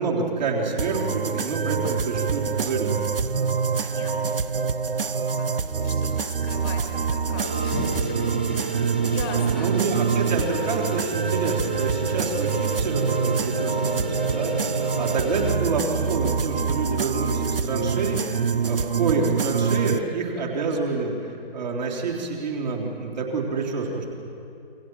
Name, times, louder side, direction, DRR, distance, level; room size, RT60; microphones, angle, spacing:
voice 1, 0.0-2.9 9.5-24.0, right 4 dB, 45° right, -2 dB, 4.0 m, -28 dB
sound 1, 0.8-20.0, right 6 dB, 60° right, 0.9 m, -26 dB
voice 2, 3.8-9.7 10.1-10.4, left 4 dB, 20° left, 4 dB, 1.8 m, -39 dB
sound 2, 7.4-15.5, right 2 dB, 10° right, 0.4 m, -31 dB
28.5 x 24.0 x 4.7 m, 2.8 s
figure-of-eight pair, 140°, 31 cm